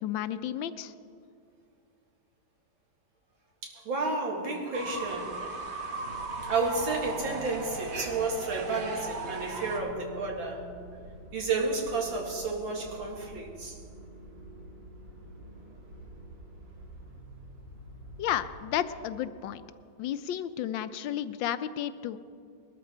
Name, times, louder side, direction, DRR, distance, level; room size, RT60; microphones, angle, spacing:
voice 1, 0.0-0.9 18.2-19.6 20.0-22.2, left 11 dB, 80° left, 12 dB, 1.3 m, -32 dB
voice 2, 3.6-5.4 6.5-10.7 11.3-13.8, right 3 dB, 85° right, -1 dB, 2.9 m, -31 dB
Fowl / Bird, 4.7-9.8, right 3 dB, 50° right, 1.6 m, -37 dB
sound 1, 6.0-19.4, equal, 70° right, 3.1 m, -47 dB
21.0 x 12.5 x 4.5 m, 2.3 s
omnidirectional pair, 2.1 m